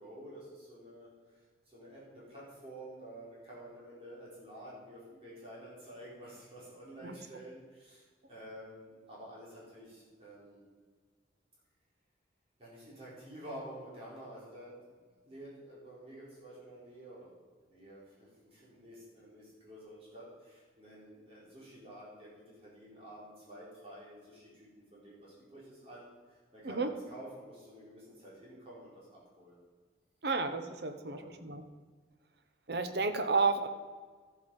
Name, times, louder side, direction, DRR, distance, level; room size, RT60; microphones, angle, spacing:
voice 1, 0.0-10.6 12.6-17.3 17.7-29.6 31.0-31.4, right 1 dB, 35° right, -7 dB, 4.4 m, -50 dB
voice 2, 30.2-31.6 32.7-33.7, right 4 dB, 60° right, 8 dB, 1.0 m, -31 dB
13.5 x 8.2 x 5.4 m, 1.5 s
head